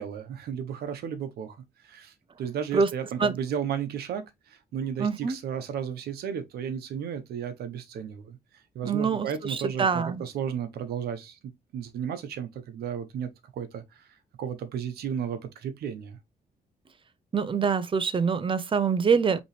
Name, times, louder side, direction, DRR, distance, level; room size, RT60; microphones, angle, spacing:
voice 1, 0.0-1.6 1.8-8.4 8.7-14.1 14.4-16.2, right 8 dB, 90° right, 0.9 m, -34 dB
voice 2, 5.0-5.4 8.8-10.2 17.3-19.4, right 5 dB, 35° right, 0.6 m, -25 dB
5.3 x 3.1 x 3.1 m
cardioid pair, 105°, 16 cm